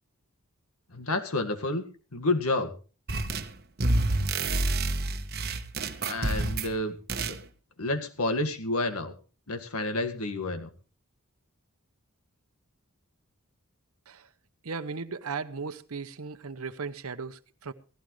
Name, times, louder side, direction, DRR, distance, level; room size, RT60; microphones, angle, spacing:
voice 1, 0.9-1.8 2.1-2.7 6.0-6.9 7.2-7.4 7.8-9.1 9.5-10.7, left 2 dB, 90° left, 1.9 m, -29 dB
sound 1, 3.1-3.5 3.8-6.8 7.1-7.4, right 2 dB, 45° right, 1.1 m, -28 dB
voice 2, 14.6-17.7, right 5 dB, 80° right, 0.9 m, -37 dB
16.5 x 15.5 x 3.2 m
head